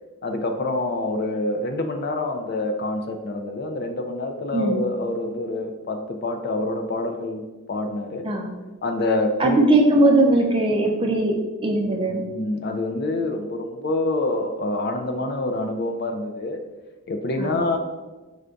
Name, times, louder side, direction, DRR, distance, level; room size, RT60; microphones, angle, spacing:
voice 1, 0.2-7.4 7.7-8.3 8.8-9.6 12.1-16.6 17.1-17.8, left 2 dB, 45° left, 5 dB, 0.4 m, -26 dB
voice 2, 4.5-4.8 8.2-8.5 9.4-11.4 11.6-12.2 17.4-17.6, right 2 dB, 25° right, 2 dB, 0.4 m, -19 dB
4.9 x 2.2 x 3.7 m, 1.2 s
head